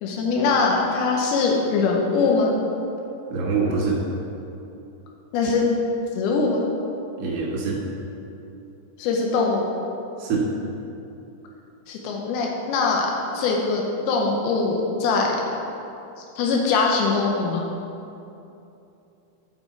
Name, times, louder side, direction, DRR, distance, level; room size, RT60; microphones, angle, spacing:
voice 1, 0.0-2.5 5.3-5.6 6.2-6.6 9.0-9.7 11.9-15.4 16.4-17.6, left 4 dB, 90° left, 0 dB, 2.2 m, -22 dB
voice 2, 3.3-4.0 7.2-7.8 10.2-10.4, right 4 dB, 60° right, -6 dB, 1.6 m, -24 dB
11.5 x 4.5 x 4.5 m, 2.8 s
omnidirectional pair, 5.5 m